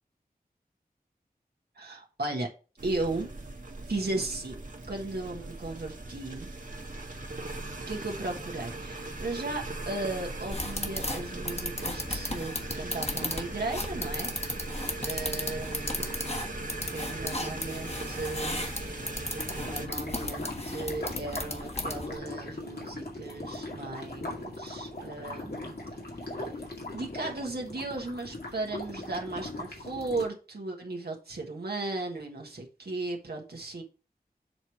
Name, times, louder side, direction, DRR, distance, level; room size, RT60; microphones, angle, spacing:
voice 1, 1.7-2.5 2.8-3.3 3.9-4.6 4.9-6.5 7.8-14.3 15.0-16.1 16.9-19.2 19.6-25.7 26.2-26.6 26.9-33.8, right 2 dB, 90° right, 1.4 m, -36 dB
sound 1, 2.8-19.9, right 2 dB, 55° right, 1.4 m, -39 dB
sound 2, 10.5-22.2, left 2 dB, 40° left, 1.4 m, -36 dB
sound 3, 19.4-30.2, left 2 dB, 85° left, 2.2 m, -39 dB
7.7 x 3.2 x 5.7 m
wide cardioid pair, 65°, 16 cm